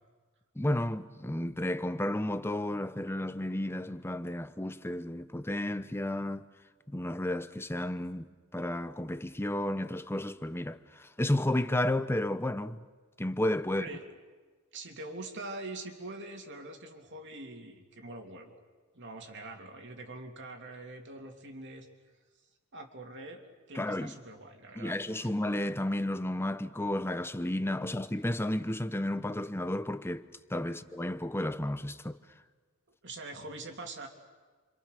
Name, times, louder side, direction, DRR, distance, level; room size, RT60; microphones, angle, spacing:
voice 1, 0.6-6.5 6.9-12.8 13.2-13.9 23.7-24.2 24.8-32.2, left 1 dB, 10° left, 0.8 m, -32 dB
voice 2, 13.7-14.0 14.7-18.6 18.9-21.9 22.7-25.0 25.2-25.3 30.7-30.8 33.0-34.1, right 2 dB, 55° right, 3.2 m, -44 dB
29.5 x 26.0 x 6.8 m
head